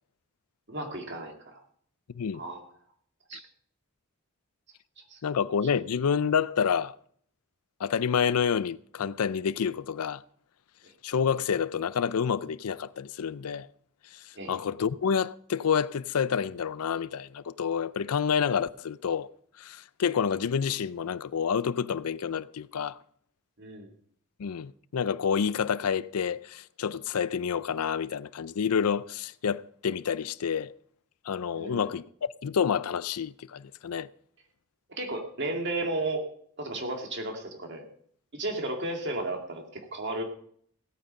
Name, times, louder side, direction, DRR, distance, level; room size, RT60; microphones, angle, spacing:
voice 1, 0.7-1.6 2.3-2.6 3.3-3.4 5.1-5.2 14.4-14.6 23.6-23.9 31.5-31.9 34.9-36.3 36.6-37.9 38.3-40.2, right 2 dB, 50° right, 2.2 m, -34 dB
voice 2, 5.2-7.0 7.8-10.2 11.0-13.7 14.5-19.3 19.6-23.0 24.4-30.7 31.3-32.1 32.4-34.1, left 7 dB, 85° left, 0.5 m, -28 dB
17.0 x 8.9 x 5.3 m
head